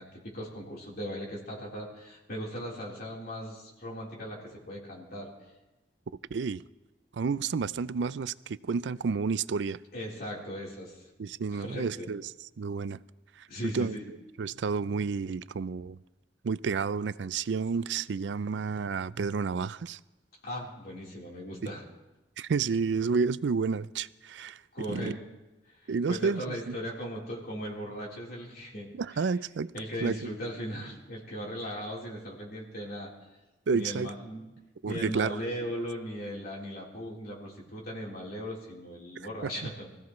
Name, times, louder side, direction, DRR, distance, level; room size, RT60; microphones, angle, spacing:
voice 1, 0.0-5.3 9.9-11.0 11.5-12.1 13.5-14.1 20.4-21.8 24.7-25.2 26.1-29.3 29.7-33.1 33.7-34.5 34.8-39.9, equal, 60° left, 3.9 m, -38 dB
voice 2, 6.3-6.6 7.1-9.8 11.2-12.3 12.6-13.0 13.4-14.0 14.4-16.0 16.4-20.0 21.6-21.7 22.4-24.6 24.9-25.2 25.9-26.8 28.9-29.7 30.0-30.2 33.7-34.1 34.8-35.4 39.4-39.7, right 5 dB, 75° right, 0.4 m, -30 dB
25.0 x 15.5 x 3.2 m
head